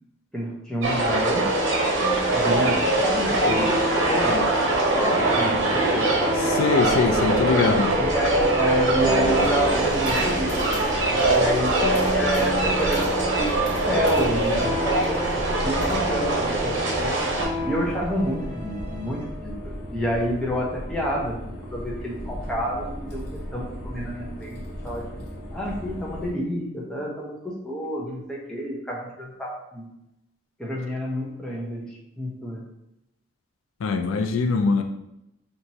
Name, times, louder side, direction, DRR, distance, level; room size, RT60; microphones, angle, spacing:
voice 1, 0.3-1.5 2.3-3.8 4.1-4.5 4.9-6.1 8.0-17.2 17.6-21.4 21.7-25.1 25.5-29.9 30.6-31.9 32.2-32.6, equal, 5° left, -4 dB, 0.7 m, -29 dB
sound 1, 0.8-17.5, right 2 dB, 75° right, 1.0 m, -23 dB
sound 2, 2.0-19.2, left 1 dB, 45° right, 0.9 m, -32 dB
voice 2, 6.4-8.0 33.8-34.8, left 4 dB, 80° left, 6 dB, 0.4 m, -22 dB
sound 3, 6.8-26.3, equal, 55° left, 1.2 m, -35 dB
4.5 x 2.9 x 2.7 m, 0.86 s
head